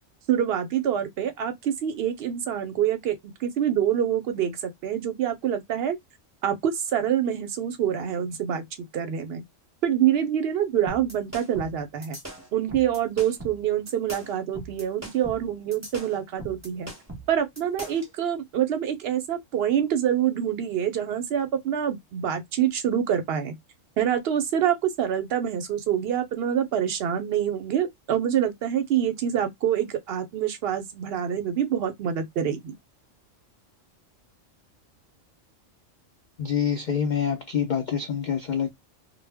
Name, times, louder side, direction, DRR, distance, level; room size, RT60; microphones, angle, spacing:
voice 1, 0.3-6.0 6.4-8.6 8.9-9.4 9.8-12.2 12.5-16.9 17.3-23.5 24.0-32.7, right 9 dB, 60° right, 0.7 m, -26 dB
sound 1, 10.9-18.1, right 1 dB, 15° right, 0.6 m, -40 dB
voice 2, 36.4-38.7, left 7 dB, 80° left, 0.4 m, -26 dB
2.1 x 2.0 x 3.4 m
omnidirectional pair, 1.3 m